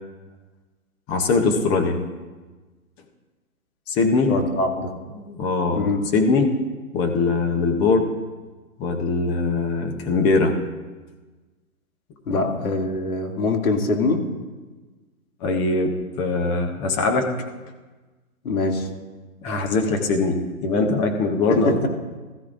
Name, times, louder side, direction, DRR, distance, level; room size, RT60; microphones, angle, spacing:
voice 1, 1.1-2.0 3.9-4.3 5.1-6.5 6.9-8.1 8.8-10.5 12.3-12.6 15.4-17.3 19.4-21.9, left 3 dB, 10° left, 4 dB, 0.6 m, -22 dB
voice 2, 4.3-4.9 5.7-6.0 12.3-14.2 18.4-18.9 21.5-21.9, left 3 dB, 70° left, 2 dB, 2.4 m, -23 dB
19.5 x 13.5 x 2.5 m, 1.3 s
hypercardioid pair, 135°, 45 cm